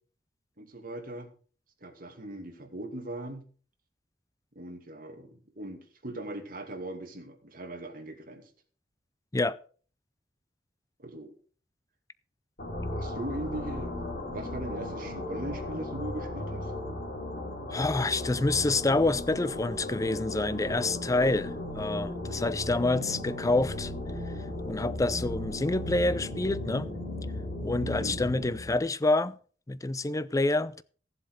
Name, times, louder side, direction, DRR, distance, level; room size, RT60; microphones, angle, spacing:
voice 1, 0.6-1.3 1.8-3.5 4.6-8.4 11.0-11.3 12.9-16.7 27.8-28.2, right 1 dB, 50° right, 2.5 m, -40 dB
sound 1, 12.6-28.8, left 1 dB, 55° left, 3.6 m, -36 dB
voice 2, 17.7-23.9 24.7-26.9 27.6-29.4 29.7-30.8, left 2 dB, 20° left, 0.5 m, -27 dB
15.0 x 7.7 x 5.0 m
head